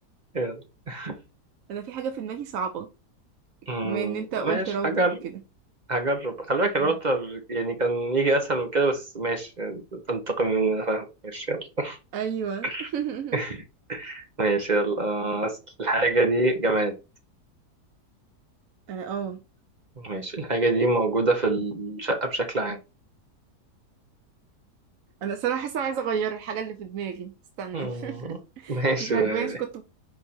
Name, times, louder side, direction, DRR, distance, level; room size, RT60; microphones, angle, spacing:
voice 1, 1.7-2.9 3.8-5.3 6.8-6.9 12.1-13.4 18.9-19.4 25.2-27.3 27.6-28.2 28.6-29.8, right 7 dB, 65° right, 1.0 m, -31 dB
voice 2, 3.7-5.2 5.9-12.0 12.6-12.9 13.3-13.6 13.9-16.9 20.0-22.8 27.7-28.4 28.7-29.6, right 2 dB, 35° right, 0.8 m, -26 dB
5.0 x 4.5 x 4.3 m
omnidirectional pair, 1.8 m